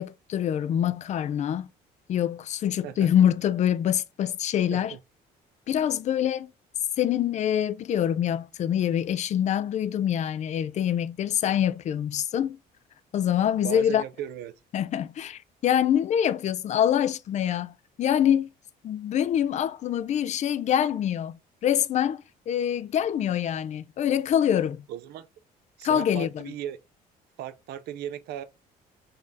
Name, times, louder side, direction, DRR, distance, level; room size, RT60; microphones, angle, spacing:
voice 1, 0.0-1.7 2.1-4.9 5.7-6.5 7.0-12.6 13.1-14.0 14.7-18.5 18.8-24.8 25.8-26.5, left 10 dB, 45° left, 0.4 m, -25 dB
voice 2, 13.6-14.5 24.9-25.3 25.8-26.8 27.4-28.4, right 11 dB, 75° right, 0.5 m, -36 dB
4.0 x 2.7 x 3.5 m
cardioid pair, 110°, 17 cm